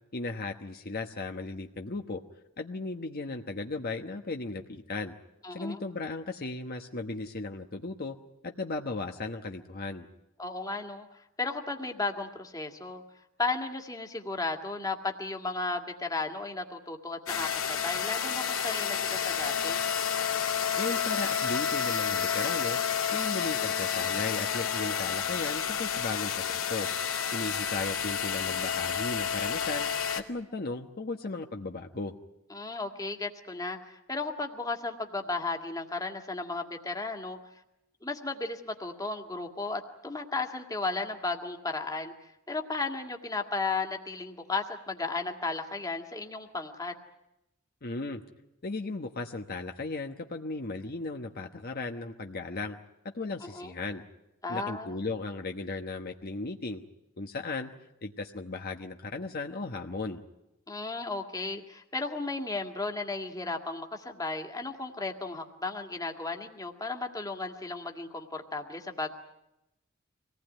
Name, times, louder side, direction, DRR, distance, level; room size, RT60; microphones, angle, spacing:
voice 1, 0.1-2.2 2.6-5.1 5.5-8.2 8.4-10.1 20.8-22.8 23.1-26.9 27.3-29.9 30.2-32.1 47.8-48.2 48.6-52.8 53.1-54.0 54.5-56.8 57.2-57.7 58.0-60.2, left 3 dB, 45° left, 4 dB, 1.1 m, -36 dB
voice 2, 5.4-5.8 10.4-13.0 13.4-19.8 32.5-37.4 38.0-42.1 42.5-46.9 53.4-53.7 54.4-55.0 60.7-69.1, left 3 dB, 20° left, 4 dB, 2.0 m, -34 dB
sound 1, 17.3-30.2, left 7 dB, 85° left, 2.3 m, -30 dB
25.5 x 19.0 x 9.1 m, 0.92 s
head